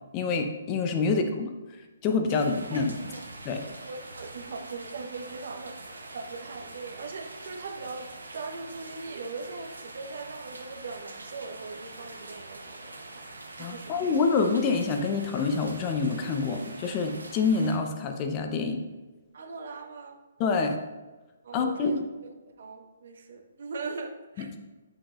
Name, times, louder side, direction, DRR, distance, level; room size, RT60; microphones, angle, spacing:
voice 1, 0.1-1.5 2.0-2.9 3.4-3.6 13.6-18.8 20.4-20.8 21.5-21.9, left 4 dB, 30° left, 5 dB, 0.7 m, -26 dB
sound 1, 2.3-17.8, right 2 dB, 85° right, 0.9 m, -44 dB
voice 2, 3.6-13.3 13.6-14.1 19.3-20.2 21.4-24.5, right 4 dB, 60° right, 4 dB, 0.8 m, -40 dB
7.8 x 6.3 x 2.5 m, 1.2 s
figure-of-eight pair, 130°, 0 cm